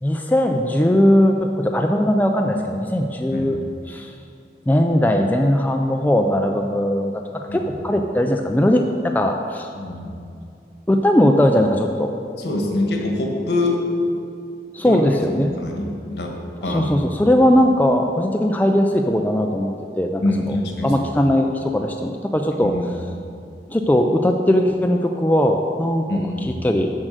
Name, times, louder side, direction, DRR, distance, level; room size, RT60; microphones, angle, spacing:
voice 1, 0.0-3.6 3.9-4.1 4.7-7.2 7.5-9.7 10.9-12.1 14.7-15.6 16.6-20.6 20.8-22.7 23.7-26.1 26.4-26.9, left 1 dB, 10° left, 3 dB, 0.3 m, -19 dB
voice 2, 9.8-10.1 12.4-13.8 14.8-15.1 15.6-16.3 16.6-16.9 17.2-17.4 20.2-20.9 22.6-23.2 26.1-26.7, left 2 dB, 70° left, 1 dB, 1.4 m, -25 dB
7.3 x 6.4 x 6.4 m, 2.4 s
head